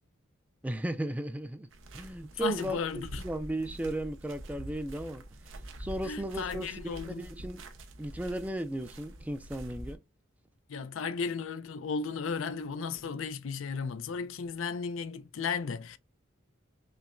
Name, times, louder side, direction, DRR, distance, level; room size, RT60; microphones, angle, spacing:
voice 1, 0.6-1.7 1.9-7.6 8.0-10.0, right 1 dB, 10° right, 0.4 m, -36 dB
sound 1, 1.7-10.0, right 1 dB, 75° right, 0.7 m, -46 dB
voice 2, 2.4-3.2 6.0-7.3 10.7-16.0, left 5 dB, 80° left, 0.5 m, -35 dB
5.5 x 2.2 x 2.4 m
head